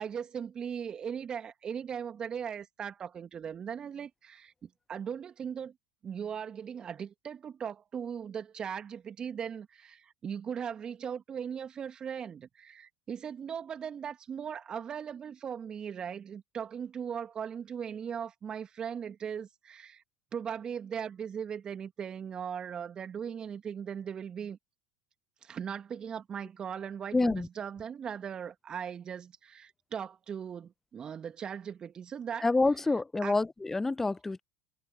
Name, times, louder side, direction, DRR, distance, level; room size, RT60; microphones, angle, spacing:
voice 1, 0.0-5.7 6.0-20.0 20.3-24.6 25.4-32.5 33.2-33.4, right 7 dB, 35° right, 2.5 m, -38 dB
voice 2, 27.1-27.5 32.4-34.4, left 3 dB, 15° left, 1.0 m, -27 dB
hypercardioid pair, 75°, 2 cm